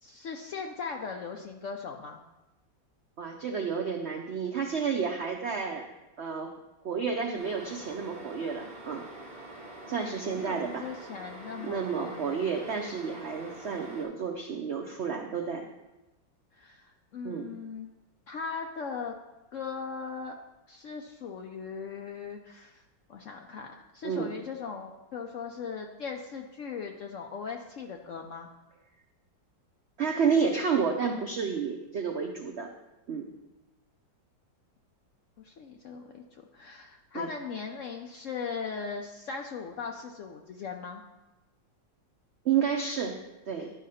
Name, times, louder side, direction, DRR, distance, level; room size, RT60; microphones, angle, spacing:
voice 1, 0.0-2.2 10.2-12.4 16.5-17.9 18.3-19.2 19.5-20.4 20.7-22.8 23.1-28.5 35.4-41.0, left 5 dB, 80° left, 2 dB, 0.6 m, -39 dB
voice 2, 3.2-5.8 6.2-6.5 6.8-9.0 9.9-10.9 11.6-15.7 17.2-17.5 24.0-24.3 30.0-32.7 33.1-33.3 37.1-37.3 42.4-43.2 43.5-43.7, right 6 dB, 80° right, 3 dB, 0.5 m, -30 dB
sound 1, 7.4-14.0, right 1 dB, 35° right, 2.8 m, -45 dB
11.5 x 5.0 x 4.2 m, 1.0 s
omnidirectional pair, 2.0 m